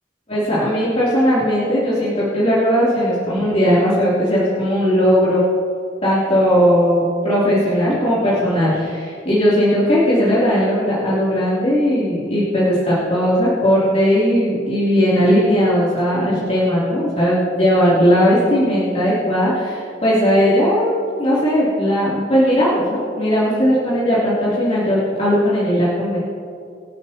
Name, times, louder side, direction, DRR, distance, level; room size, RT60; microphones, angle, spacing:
voice 1, 0.3-5.4 6.0-26.2, equal, 35° left, -11 dB, 3.1 m, -17 dB
25.0 x 8.4 x 2.9 m, 2.5 s
head